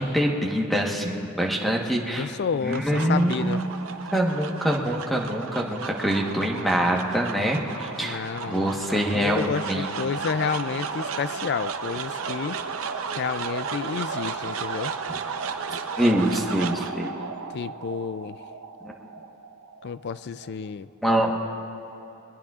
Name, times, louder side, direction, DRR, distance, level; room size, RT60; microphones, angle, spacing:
voice 1, 0.0-2.3 2.6-3.6 4.1-9.9 16.0-17.1 18.8-18.9 21.0-21.3, equal, ahead, 0 dB, 1.2 m, -25 dB
voice 2, 2.1-3.6 8.0-12.6 13.2-14.9 17.5-18.4 19.8-20.9, left 6 dB, 50° left, 15 dB, 0.3 m, -30 dB
sound 1, 2.4-20.7, right 5 dB, 85° right, 0.7 m, -34 dB
22.5 x 20.5 x 2.4 m, 2.8 s
head